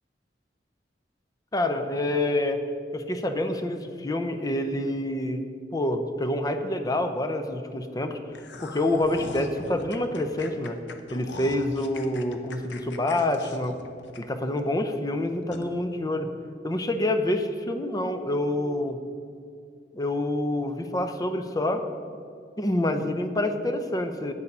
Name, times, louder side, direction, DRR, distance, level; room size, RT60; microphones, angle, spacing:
voice 1, 1.5-2.6 2.9-5.4 5.7-8.2 8.6-10.8 11.1-13.8 14.2-16.3 16.6-19.0 19.9-21.8 22.6-24.3, left 1 dB, 20° left, 8 dB, 0.5 m, -27 dB
sound 1, 8.3-14.6 15.0-15.1 15.5-15.7, left 3 dB, 80° left, 0.7 m, -42 dB
8.4 x 6.9 x 5.4 m, 2.4 s
head